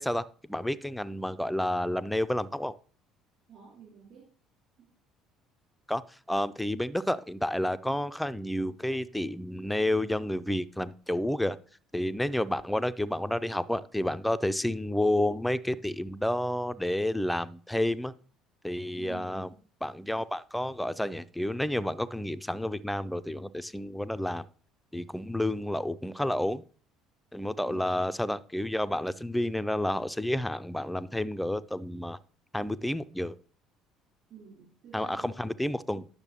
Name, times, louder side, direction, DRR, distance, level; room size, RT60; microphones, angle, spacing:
voice 1, 0.0-2.7 5.9-11.6 11.9-18.1 18.6-19.5 19.8-24.5 24.9-26.6 27.3-32.2 32.5-33.4 34.9-36.1, left 1 dB, 5° left, 14 dB, 0.4 m, -30 dB
voice 2, 3.5-4.3 4.8-4.9 19.0-19.6 27.6-27.8 34.3-35.6, right 7 dB, 50° right, -5 dB, 3.7 m, -50 dB
9.7 x 6.7 x 2.9 m, 0.42 s
figure-of-eight pair, 55°, 0 cm